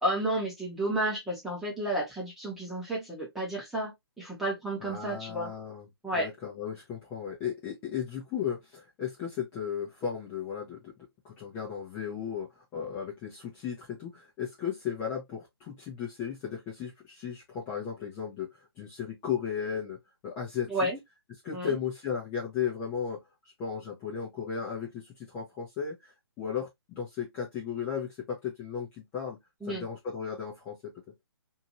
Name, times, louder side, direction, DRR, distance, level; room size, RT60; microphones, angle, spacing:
voice 1, 0.0-5.5 6.0-6.3 20.7-21.0 21.5-21.8 29.6-29.8, right 1 dB, ahead, 1.1 m, -31 dB
voice 2, 4.8-5.9 6.1-10.9 11.2-20.0 20.2-20.9 21.4-23.2 23.6-29.4 29.7-30.8, left 7 dB, 15° left, 0.9 m, -35 dB
2.8 x 2.6 x 2.9 m
figure-of-eight pair, 145°, 14 cm